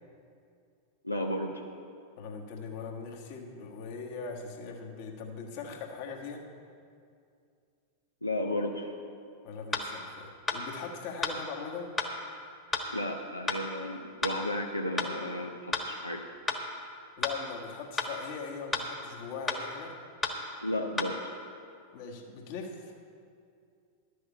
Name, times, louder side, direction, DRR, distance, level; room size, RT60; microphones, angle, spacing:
voice 1, 1.0-1.6 8.2-8.9 12.9-16.2 20.6-21.2, left 1 dB, 85° left, 1 dB, 0.7 m, -33 dB
voice 2, 2.2-6.4 9.4-11.9 17.2-20.0 21.9-22.9, left 5 dB, 50° left, 1 dB, 1.5 m, -40 dB
sound 1, 9.7-9.9 10.5-10.6 11.2-11.4 12.0-12.1 12.7-12.9 13.5-13.6 14.2-14.4 15.0-15.1 15.7-15.9 16.5-16.6 17.2-17.4 18.0-18.1 18.7-18.9 19.5-19.6 20.2-20.4 21.0-21.1, left 3 dB, 15° left, 1.3 m, -31 dB
12.0 x 6.5 x 8.3 m, 2.4 s
figure-of-eight pair, 90°, 0 cm